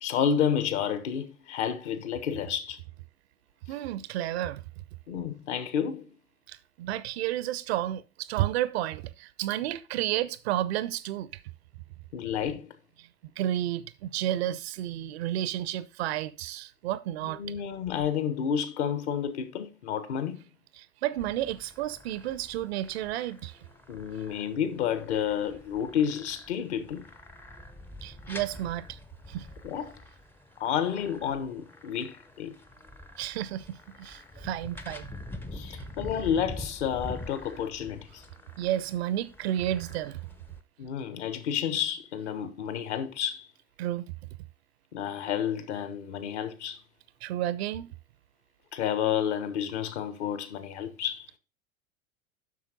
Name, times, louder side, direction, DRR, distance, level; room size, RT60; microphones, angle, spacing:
voice 1, 0.0-2.8 5.1-6.1 12.1-12.7 17.4-20.4 23.9-27.0 29.6-30.0 30.6-32.5 35.5-38.2 40.8-43.5 44.9-46.8 48.7-51.3, left 8 dB, 55° left, 1.3 m, -30 dB
voice 2, 3.7-4.6 6.5-11.4 13.4-17.4 20.8-23.6 28.0-29.0 29.3-29.5 33.2-35.1 35.7-35.9 38.6-40.2 43.8-44.0 47.2-47.9, right 13 dB, 50° right, 0.6 m, -31 dB
sound 1, 21.2-40.6, left 1 dB, 5° left, 0.5 m, -46 dB
7.6 x 6.0 x 3.9 m
figure-of-eight pair, 85°, 41 cm